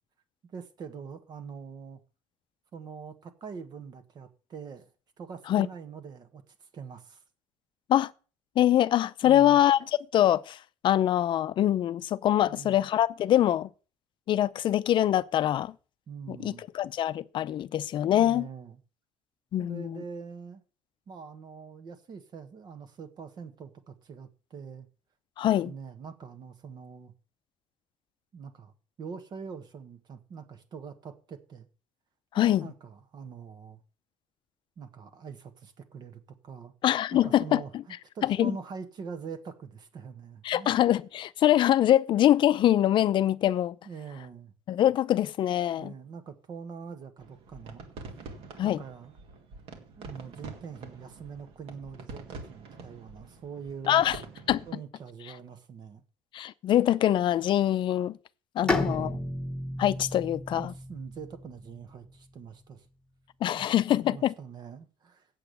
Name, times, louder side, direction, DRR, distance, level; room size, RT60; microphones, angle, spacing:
voice 1, 0.5-2.0 2.7-4.9 5.2-7.2 9.2-9.6 12.4-12.8 16.1-16.6 18.0-18.8 19.6-20.6 21.1-24.9 25.6-27.1 28.3-31.7 32.3-33.8 34.8-36.7 37.1-40.8 43.8-44.5 45.8-47.9 48.6-49.1 50.0-54.0 54.7-56.0 58.6-59.4 60.5-62.9 63.5-63.7 64.1-65.3, right 6 dB, 40° right, 1.5 m, -43 dB
voice 2, 8.6-9.8 10.1-10.6 10.8-13.7 14.3-15.7 16.3-18.5 19.5-20.0 25.4-25.7 32.3-32.7 36.8-37.6 38.2-38.5 40.4-43.8 44.7-45.9 48.6-48.8 53.9-54.2 54.5-54.6 56.3-58.2 58.6-59.1 59.8-60.7 63.4-64.3, left 12 dB, 45° left, 0.6 m, -24 dB
sound 1, 47.2-54.7, right 3 dB, 60° right, 2.3 m, -46 dB
Bowed string instrument, 58.7-62.3, left 2 dB, 5° left, 1.5 m, -33 dB
8.4 x 8.0 x 6.8 m
cardioid pair, 150°, 11 cm